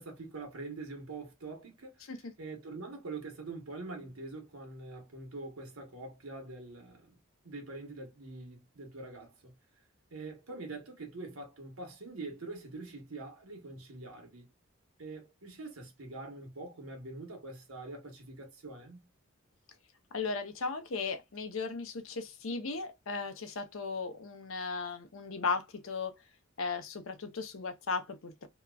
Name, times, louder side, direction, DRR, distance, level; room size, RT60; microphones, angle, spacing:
voice 1, 0.0-2.1 2.4-7.2 7.4-9.5 10.1-14.5 15.0-19.1, right 3 dB, 80° right, 1.1 m, -44 dB
voice 2, 20.1-26.1 26.6-28.5, left 4 dB, 70° left, 0.7 m, -36 dB
2.9 x 2.3 x 2.3 m
head